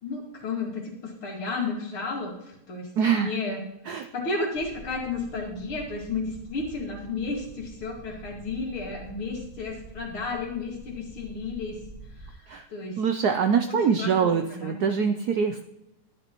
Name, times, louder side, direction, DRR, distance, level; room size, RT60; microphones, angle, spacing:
voice 1, 0.0-3.6 3.9-11.8 12.2-13.0 13.7-14.9, left 3 dB, 75° left, 0 dB, 2.9 m, -33 dB
voice 2, 3.0-3.3 3.9-4.1 12.5-12.7 13.0-15.6, right 6 dB, 75° right, 7 dB, 0.9 m, -24 dB
sound 1, 4.5-12.3, right 2 dB, 10° right, 1.3 m, -46 dB
13.0 x 10.5 x 3.0 m, 0.87 s
omnidirectional pair, 2.3 m